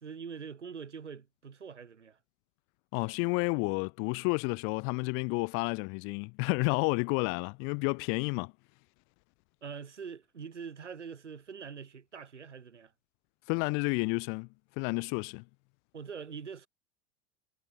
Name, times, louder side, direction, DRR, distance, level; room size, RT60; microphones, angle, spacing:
voice 1, 0.0-2.2 9.6-12.9 15.9-16.7, right 6 dB, 85° right, 1.0 m, -44 dB
voice 2, 2.9-8.5 13.5-14.5 14.8-15.4, left 36 dB, 40° left, 0.6 m, -30 dB
figure-of-eight pair, 80°, 35 cm